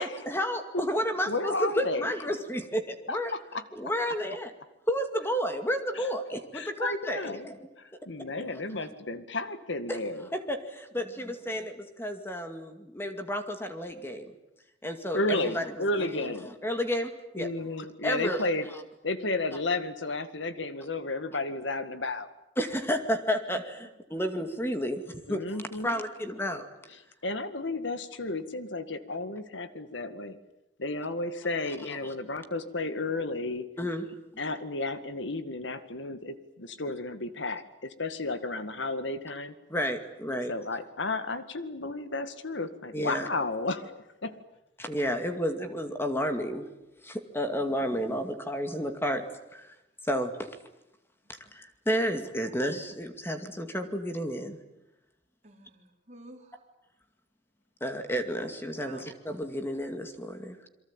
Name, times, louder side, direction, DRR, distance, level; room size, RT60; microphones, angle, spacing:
voice 1, 0.0-3.3 3.8-4.5 4.9-7.6 8.4-8.5 9.9-10.0 10.3-14.3 14.8-16.3 16.6-17.5 18.0-18.4 22.6-25.0 25.3-25.4 25.8-26.7 33.8-34.1 39.7-40.5 42.9-43.3 44.8-46.7 47.0-49.2 49.5-49.7 50.0-50.5 51.5-54.6 57.8-60.6, equal, 15° left, 6 dB, 2.3 m, -31 dB
voice 2, 1.3-2.1 3.1-3.6 6.0-6.1 6.5-7.5 7.8-10.3 15.1-16.5 17.4-18.7 19.0-22.3 25.3-26.0 27.2-30.4 30.8-33.7 34.4-39.5 40.5-44.4 47.9-48.2, left 2 dB, 80° left, 11 dB, 2.0 m, -33 dB
voice 3, 10.9-11.4 23.8-24.2 26.3-26.4 51.2-51.3 52.4-52.6 55.4-56.7 57.9-58.0 58.8-59.1, right 2 dB, 40° right, 2 dB, 4.5 m, -53 dB
28.0 x 23.5 x 9.0 m, 0.88 s
head